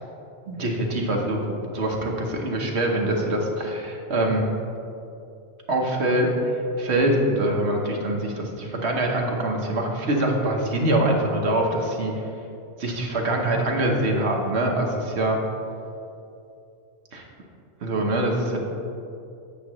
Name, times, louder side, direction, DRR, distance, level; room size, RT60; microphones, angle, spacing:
voice 1, 0.5-4.5 5.7-6.3 6.8-12.1 12.8-15.4 17.1-17.2 17.8-18.6, right 1 dB, 60° right, 0 dB, 1.2 m, -24 dB
8.6 x 7.3 x 3.0 m, 2.6 s
omnidirectional pair, 1.3 m